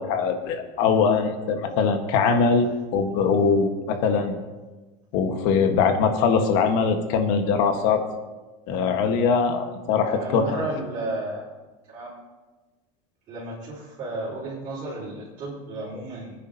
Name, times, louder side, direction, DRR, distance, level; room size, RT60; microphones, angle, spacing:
voice 1, 0.0-4.3 5.1-8.0 8.7-10.6, left 5 dB, 60° left, 6 dB, 1.6 m, -22 dB
voice 2, 9.9-11.4 11.9-12.1 13.3-16.3, right 2 dB, 35° right, -9 dB, 4.6 m, -33 dB
25.0 x 10.0 x 2.9 m, 1.2 s
cardioid pair, 160°, 17 cm